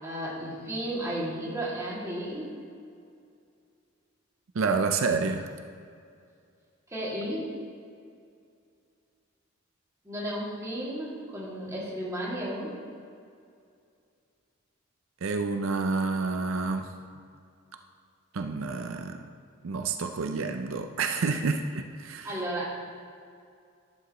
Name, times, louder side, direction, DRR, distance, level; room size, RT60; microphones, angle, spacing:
voice 1, 0.0-2.5 6.9-7.5 10.0-12.7 22.2-22.8, right 1 dB, 15° right, -7 dB, 2.5 m, -33 dB
voice 2, 4.5-5.5 15.2-16.9 18.3-19.3 19.6-22.4, right 4 dB, 80° right, 5 dB, 0.5 m, -29 dB
11.5 x 9.7 x 3.1 m, 2.4 s
head